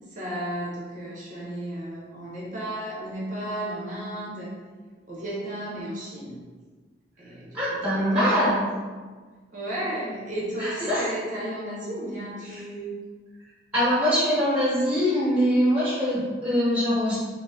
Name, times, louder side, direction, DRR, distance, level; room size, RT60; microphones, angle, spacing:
voice 1, 0.1-4.6 5.1-6.4 7.2-8.1 9.5-13.0, right 1 dB, 40° right, -5 dB, 0.9 m, -33 dB
voice 2, 7.5-8.7 10.6-11.1 12.5-12.6 13.7-17.2, equal, 10° right, -10 dB, 1.2 m, -23 dB
2.8 x 2.8 x 3.6 m, 1.4 s
head